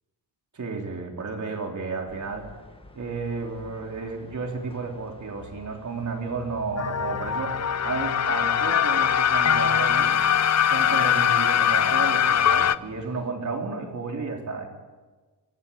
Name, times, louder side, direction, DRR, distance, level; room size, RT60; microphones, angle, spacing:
voice 1, 0.5-2.5 2.9-10.1 10.6-14.7, right 4 dB, 45° right, 2 dB, 4.1 m, -32 dB
sound 1, 2.1-13.3, left 1 dB, 15° left, 1.7 m, -49 dB
sound 2, 6.8-12.7, left 8 dB, 40° left, 0.6 m, -22 dB
25.5 x 15.0 x 9.1 m, 1.3 s
wide cardioid pair, 140°, 41 cm